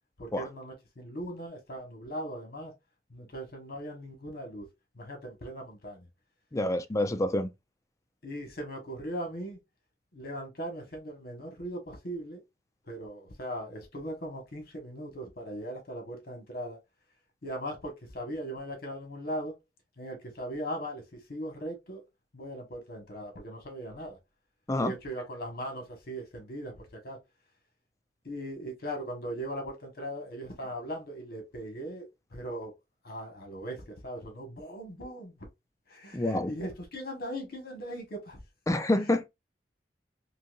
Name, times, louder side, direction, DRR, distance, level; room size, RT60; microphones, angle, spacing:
voice 1, 0.2-2.7 3.1-4.7 4.9-6.1 8.2-9.6 10.1-12.4 12.9-16.8 17.4-19.5 20.0-21.0 21.3-22.0 22.3-24.2 24.8-27.2 28.2-32.1 32.3-32.7 33.0-35.4 35.9-38.4, equal, 60° left, 1.2 m, -39 dB
voice 2, 6.5-7.5 24.7-24.9 36.1-36.5 38.7-39.3, left 1 dB, 20° left, 0.3 m, -27 dB
3.9 x 2.7 x 2.4 m
head